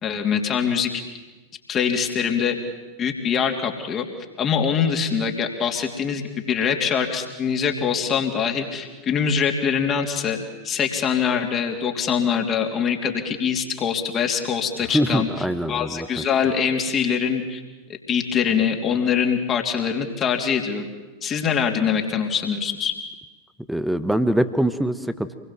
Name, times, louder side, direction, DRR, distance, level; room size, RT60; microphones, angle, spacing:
voice 1, 0.0-0.9 1.7-2.6 3.0-4.1 4.4-6.2 6.5-10.4 10.6-17.6 18.1-20.8 21.2-22.9, left 7 dB, 25° left, 3 dB, 3.2 m, -23 dB
voice 2, 14.9-16.2 23.7-25.3, right 1 dB, ahead, 12 dB, 1.3 m, -23 dB
27.0 x 21.5 x 7.6 m, 1.2 s
figure-of-eight pair, 90°, 0 cm